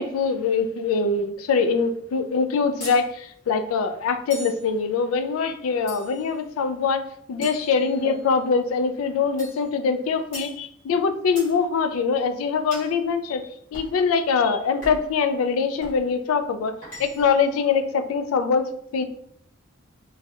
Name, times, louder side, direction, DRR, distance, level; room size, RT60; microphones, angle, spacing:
voice 1, 0.0-7.0 7.3-13.4 13.7-16.7 17.0-19.0, left 5 dB, 90° left, 9 dB, 0.3 m, -23 dB
sound 1, 2.8-3.1 4.3-4.7 5.9-6.3 7.4-8.3 9.4-9.7 10.3-10.6 11.4-11.6 12.7-13.0 13.7-14.0 14.8-15.2 15.8-16.0 16.8-17.4, equal, 40° left, 1.4 m, -40 dB
3.2 x 2.6 x 2.3 m, 0.69 s
head